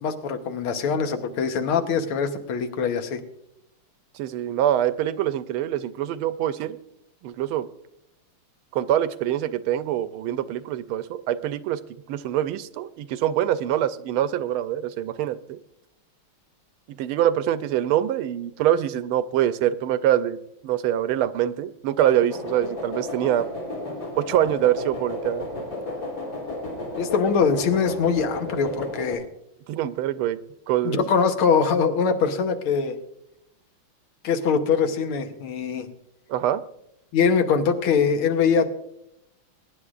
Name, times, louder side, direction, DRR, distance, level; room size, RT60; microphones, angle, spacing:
voice 1, 0.0-3.2 27.0-29.2 30.8-33.0 34.2-35.9 37.1-38.7, left 6 dB, 80° left, 7 dB, 1.9 m, -23 dB
voice 2, 4.1-6.8 7.2-7.7 8.7-11.8 12.1-15.6 16.9-20.4 20.6-23.5 24.2-25.4 29.7-30.4 30.7-31.0 36.3-36.6, right 11 dB, 85° right, 13 dB, 1.5 m, -24 dB
sound 1, 22.3-29.2, left 2 dB, 65° left, 4.0 m, -33 dB
22.5 x 10.0 x 2.4 m, 0.78 s
omnidirectional pair, 2.3 m